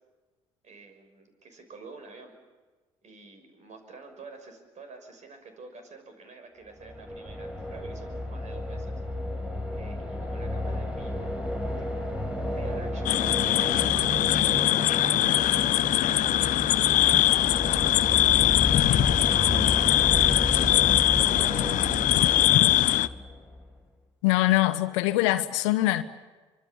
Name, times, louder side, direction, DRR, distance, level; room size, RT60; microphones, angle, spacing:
voice 1, 0.6-2.3 3.0-9.0 9.7-14.2 14.5-18.4 19.0-20.8 21.1-22.6, right 3 dB, 50° right, 6.1 m, -48 dB
sound 1, 6.7-23.7, left 1 dB, 5° right, 6.4 m, -32 dB
sound 2, 13.0-23.1, left 14 dB, 60° left, 0.7 m, -22 dB
voice 2, 24.2-26.0, left 17 dB, 80° left, 1.1 m, -23 dB
25.0 x 24.5 x 7.2 m
hypercardioid pair, 60°, 15 cm